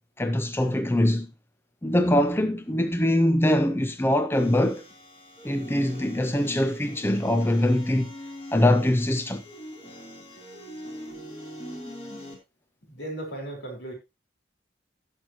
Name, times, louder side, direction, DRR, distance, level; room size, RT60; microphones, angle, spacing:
voice 1, 0.2-1.3 1.8-4.8 5.4-8.1 8.5-9.4, left 1 dB, 10° left, 0.5 m, -23 dB
sound 1, 4.3-12.3, equal, 35° left, 3.3 m, -42 dB
voice 2, 12.9-13.9, right 1 dB, 75° left, 4.2 m, -36 dB
17.0 x 6.4 x 2.9 m
head